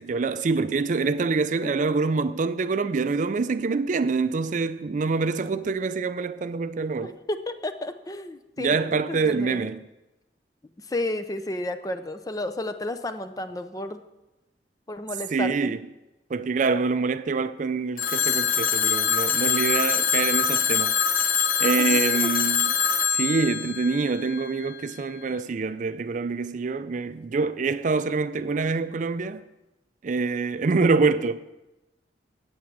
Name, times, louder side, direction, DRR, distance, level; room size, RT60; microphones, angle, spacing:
voice 1, 0.0-7.2 8.6-9.9 15.3-15.8 16.3-21.0 21.6-22.8 23.1-29.4 30.0-31.5, right 4 dB, 45° right, 0.4 m, -25 dB
voice 2, 7.0-9.7 10.9-14.0 14.9-15.8 21.8-22.3 22.7-22.8, left 1 dB, 20° left, 0.6 m, -32 dB
Telephone, 18.0-24.8, left 7 dB, 50° left, 0.8 m, -24 dB
8.6 x 8.3 x 7.7 m
head